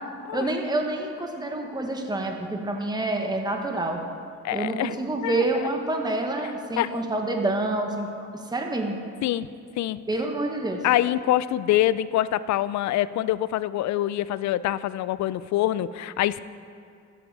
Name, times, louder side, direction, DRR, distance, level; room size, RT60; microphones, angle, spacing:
voice 1, 0.3-4.0 4.5-9.0 10.1-10.8, right 2 dB, 15° right, 3 dB, 1.2 m, -27 dB
voice 2, 4.4-5.0 5.2-5.4 6.8-7.0 9.2-9.5 9.8-10.0 10.8-16.4, left 13 dB, 70° left, 17 dB, 0.5 m, -25 dB
13.0 x 9.1 x 4.7 m, 2.4 s
cardioid pair, 90°, 30 cm